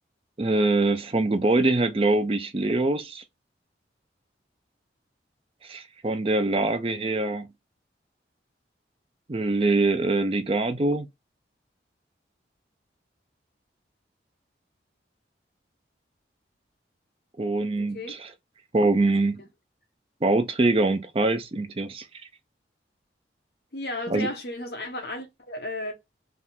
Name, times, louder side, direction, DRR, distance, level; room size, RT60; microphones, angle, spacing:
voice 1, 0.4-3.2 5.6-7.5 9.3-11.1 17.4-18.2 18.7-19.4 20.2-22.1 24.1-24.3, right 2 dB, 30° right, 0.5 m, -24 dB
voice 2, 17.8-18.2 19.0-19.1 23.7-25.9, left 1 dB, 60° left, 1.1 m, -34 dB
3.6 x 2.5 x 4.2 m
head